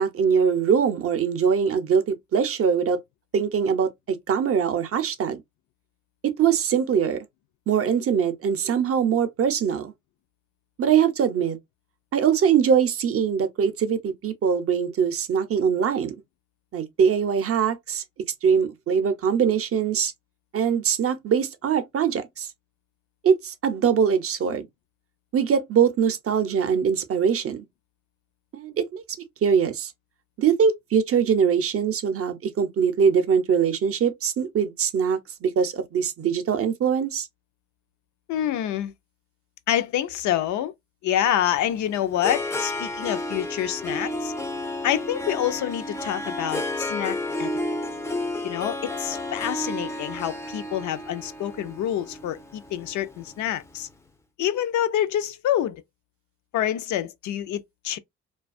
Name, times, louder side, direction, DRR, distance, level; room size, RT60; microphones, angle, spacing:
voice 1, 0.0-3.0 3.3-5.4 6.2-7.2 7.7-9.9 10.8-11.6 12.1-16.1 16.7-18.0 18.4-20.1 20.5-22.5 23.2-24.7 25.3-27.7 28.5-29.0 29.4-29.9 30.4-37.3, right 7 dB, 50° right, 0.5 m, -22 dB
voice 2, 38.3-38.9 39.7-40.7 41.0-44.3 44.8-47.5 48.4-53.9 54.4-55.8 56.5-58.0, left 11 dB, 70° left, 0.4 m, -27 dB
Harp, 41.5-53.7, left 1 dB, 10° left, 0.4 m, -32 dB
2.3 x 2.3 x 2.4 m
cardioid pair, 90°, 30 cm